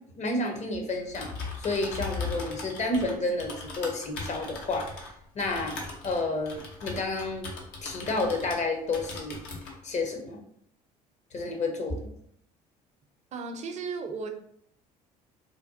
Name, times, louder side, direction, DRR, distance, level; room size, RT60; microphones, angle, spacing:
voice 1, 0.2-1.3 1.6-4.9 5.3-5.8 6.0-7.5 7.8-9.4 9.8-10.4 11.3-12.0, left 2 dB, 35° left, 3 dB, 0.9 m, -30 dB
Typing, 1.0-8.7 8.9-9.7, left 3 dB, 65° left, 0.9 m, -39 dB
voice 2, 13.3-14.3, right 4 dB, 35° right, 4 dB, 0.6 m, -35 dB
4.1 x 2.2 x 2.7 m, 0.69 s
hypercardioid pair, 60°, 19 cm